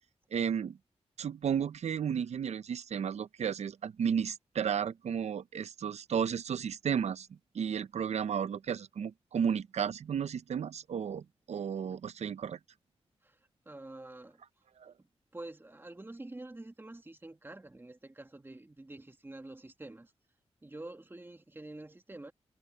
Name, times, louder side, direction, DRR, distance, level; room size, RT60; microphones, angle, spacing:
voice 1, 0.3-0.8 1.2-7.3 7.5-12.6 14.8-14.9, right 7 dB, 85° right, 0.6 m, -33 dB
voice 2, 13.7-14.4 15.0-20.1 20.6-22.3, right 2 dB, 20° right, 1.9 m, -47 dB
wide cardioid pair, 105°, 11 cm